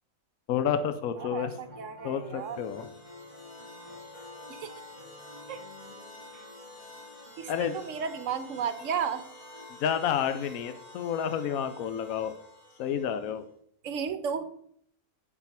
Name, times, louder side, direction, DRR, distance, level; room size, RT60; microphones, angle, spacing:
voice 1, 0.5-1.5 2.0-2.9 7.5-7.7 9.8-12.3 12.8-13.4, left 8 dB, 70° left, 10 dB, 1.1 m, -30 dB
sound 1, 1.2-9.7, left 2 dB, 30° right, 2.6 m, -51 dB
voice 2, 1.2-2.6 4.6-4.7 5.5-5.6 7.4-9.2 13.8-14.4, right 7 dB, 60° right, 12 dB, 1.1 m, -33 dB
sound 2, 2.2-13.5, left 1 dB, 35° left, 3.0 m, -50 dB
10.5 x 4.6 x 5.8 m, 0.64 s
omnidirectional pair, 1.6 m